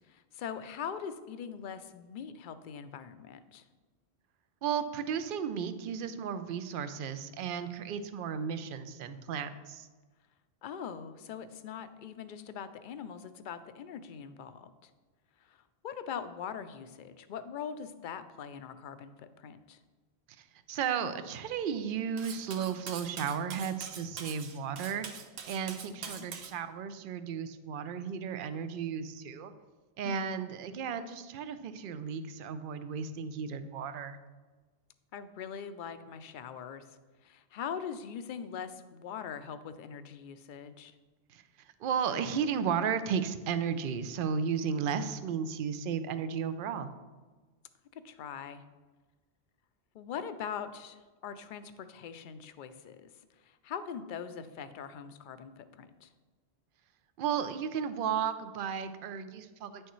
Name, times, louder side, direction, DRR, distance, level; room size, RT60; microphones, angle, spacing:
voice 1, 0.0-3.6 10.6-14.9 15.4-19.8 26.0-26.3 30.0-30.3 35.1-40.9 47.9-48.6 49.9-56.1, left 7 dB, 60° left, 11 dB, 0.6 m, -42 dB
voice 2, 4.6-9.9 20.7-25.1 25.5-29.5 30.0-34.2 41.3-41.4 41.8-46.9 57.2-59.9, right 7 dB, 65° right, 11 dB, 0.7 m, -34 dB
Cutlery silverware, 22.2-26.5, right 6 dB, 80° right, 1.0 m, -44 dB
9.2 x 6.4 x 3.1 m, 1.3 s
omnidirectional pair, 1.1 m